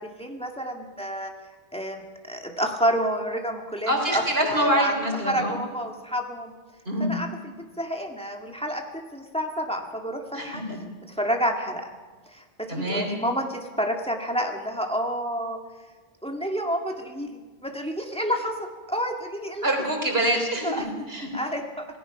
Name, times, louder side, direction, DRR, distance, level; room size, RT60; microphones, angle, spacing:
voice 1, 0.0-1.3 1.7-5.0 5.3-6.5 7.0-7.3 7.8-10.6 11.0-11.9 12.3-15.6 16.2-19.7 20.6-21.1 21.3-21.9, equal, 5° left, 2 dB, 1.8 m, -29 dB
voice 2, 3.9-5.6 6.9-7.1 10.3-10.8 12.7-13.1 19.6-21.3, right 1 dB, 75° right, 2 dB, 3.8 m, -25 dB
26.5 x 17.0 x 5.9 m, 1.4 s
omnidirectional pair, 1.0 m